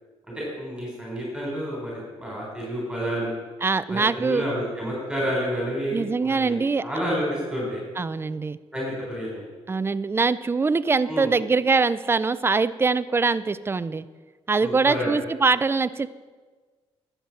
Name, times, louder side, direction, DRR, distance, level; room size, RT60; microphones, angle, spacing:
voice 1, 0.4-3.3 3.9-7.8 8.7-9.4 11.1-11.3 14.6-15.1, equal, 5° right, -3 dB, 3.9 m, -29 dB
voice 2, 3.6-4.4 5.9-6.8 8.0-8.6 9.7-14.1 14.5-16.1, right 4 dB, 20° right, 15 dB, 0.4 m, -23 dB
12.5 x 8.0 x 5.9 m, 1.4 s
cardioid pair, 95°, 11 cm